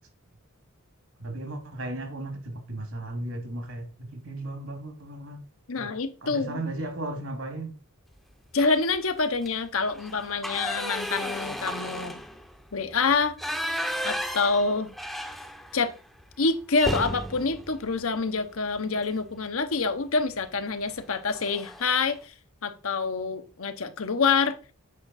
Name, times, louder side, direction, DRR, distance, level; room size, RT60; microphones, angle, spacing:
voice 1, 1.2-5.4 5.8-7.7, right 2 dB, 70° right, 2.4 m, -35 dB
voice 2, 5.7-6.6 8.5-12.2 12.7-13.3 14.0-14.9 15.7-15.9 16.4-22.3 22.6-24.6, left 4 dB, 65° left, 0.9 m, -26 dB
sound 1, 8.5-9.0 9.3-9.5 9.9-15.9 16.2-16.3 16.7-18.9 20.2-20.5 20.9-21.0 21.3-21.9, equal, ahead, 0.7 m, -34 dB
8.5 x 5.8 x 4.2 m
head